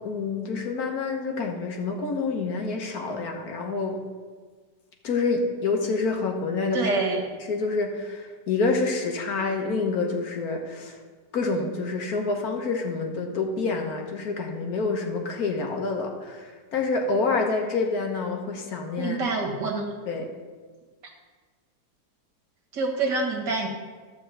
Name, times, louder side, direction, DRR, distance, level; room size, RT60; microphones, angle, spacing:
voice 1, 0.0-4.0 5.0-6.9 7.5-11.0 11.3-19.2 20.1-20.3, left 3 dB, 60° left, 3 dB, 1.5 m, -27 dB
voice 2, 6.7-7.2 19.0-19.9 22.7-23.7, right 3 dB, 75° right, -1 dB, 2.3 m, -26 dB
12.5 x 4.5 x 7.7 m, 1.5 s
omnidirectional pair, 1.9 m